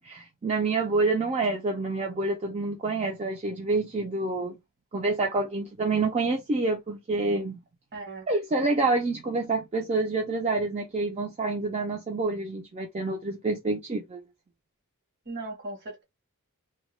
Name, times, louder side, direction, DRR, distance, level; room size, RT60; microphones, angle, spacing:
voice 1, 0.0-4.5 4.9-7.6 8.3-14.2, right 3 dB, 30° right, 0.4 m, -27 dB
voice 2, 7.9-8.3 15.2-16.0, right 2 dB, 50° right, 1.0 m, -37 dB
2.2 x 2.1 x 3.1 m
head